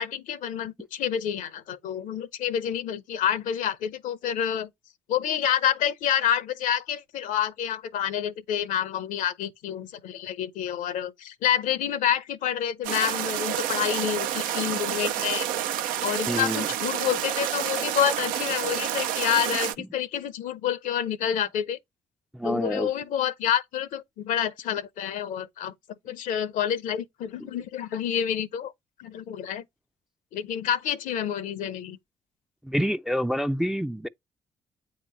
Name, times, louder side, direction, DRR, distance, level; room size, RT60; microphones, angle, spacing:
voice 1, 0.0-4.7 5.1-15.5 16.0-21.8 22.4-25.7 26.1-28.7 29.0-29.6 30.3-32.0, left 9 dB, 60° left, 0.7 m, -28 dB
sound 1, 12.8-19.7, right 11 dB, 65° right, 0.5 m, -29 dB
voice 2, 16.3-16.7 19.8-19.9 22.3-22.9 27.4-27.5 32.6-34.1, equal, 5° right, 0.5 m, -27 dB
8.7 x 2.9 x 5.2 m
figure-of-eight pair, 40°, 15 cm